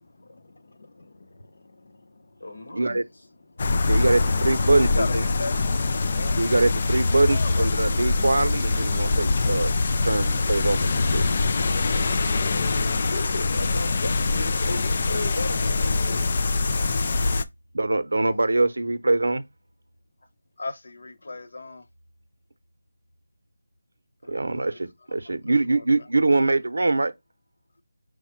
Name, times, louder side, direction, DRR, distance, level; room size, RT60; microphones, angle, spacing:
voice 1, 0.0-3.0 3.4-4.1 4.8-6.4 18.3-18.5 20.6-21.9 24.2-24.8 25.2-26.4, left 3 dB, 55° left, 0.7 m, -39 dB
voice 2, 2.4-3.3 12.8-16.3, left 2 dB, 75° left, 1.2 m, -35 dB
sound 1, 3.6-17.4, left 3 dB, 35° left, 0.3 m, -24 dB
voice 3, 3.8-5.2 6.3-9.7 10.0-11.2 17.7-19.4 24.3-27.1, right 2 dB, 85° right, 0.6 m, -23 dB
4.8 x 2.1 x 4.4 m
figure-of-eight pair, 175°, 0 cm